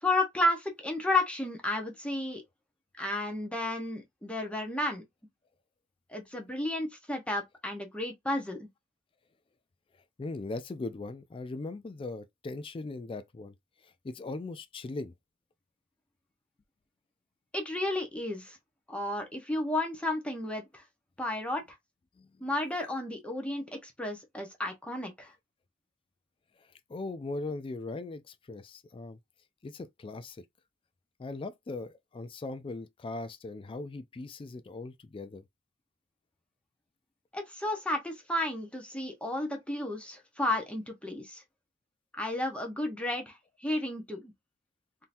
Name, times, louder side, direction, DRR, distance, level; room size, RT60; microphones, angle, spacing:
voice 1, 0.0-2.4 3.0-5.0 6.1-8.7 17.5-18.6 18.9-20.8 21.2-21.6 22.4-25.3 37.3-41.4 42.1-44.3, left 1 dB, 5° left, 0.8 m, -32 dB
voice 2, 10.2-13.5 13.8-15.1 22.2-22.3 26.6-29.2 29.6-30.4 31.2-35.4, left 3 dB, 25° left, 0.3 m, -39 dB
3.7 x 2.8 x 2.6 m
head